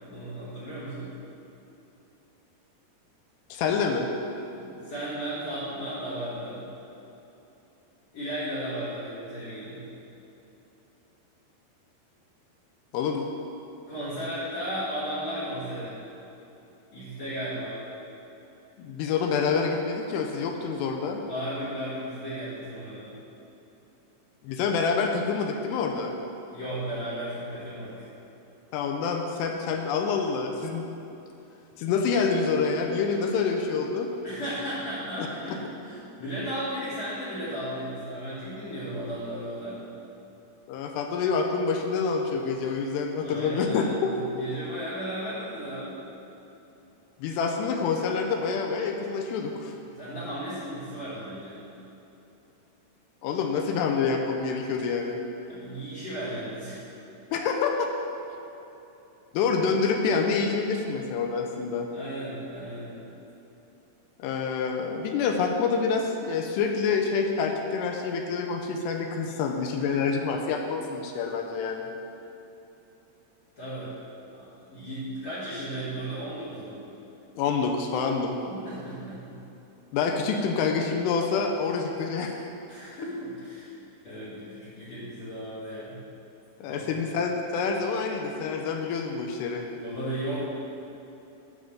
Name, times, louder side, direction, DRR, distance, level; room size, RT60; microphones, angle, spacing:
voice 1, 0.0-1.1 4.5-6.6 8.1-9.8 13.9-16.0 16.9-17.8 21.3-23.1 26.5-28.1 34.2-39.8 43.2-46.0 50.0-51.6 55.5-56.8 61.9-63.0 73.6-73.9 74.3-76.8 78.5-79.4 82.7-83.7 84.0-86.0 86.7-87.0 89.8-90.4, right 1 dB, 50° left, -11 dB, 2.5 m, -35 dB
voice 2, 3.5-4.1 12.9-13.3 18.8-21.2 24.4-26.1 28.7-30.8 31.8-34.1 35.2-35.6 40.7-44.1 47.2-49.7 53.2-55.2 57.3-57.9 59.3-61.9 64.2-71.9 77.4-78.4 79.9-82.4 86.6-89.7, left 5 dB, 85° left, 3 dB, 2.6 m, -27 dB
9.4 x 3.7 x 6.8 m, 3.0 s
omnidirectional pair, 4.9 m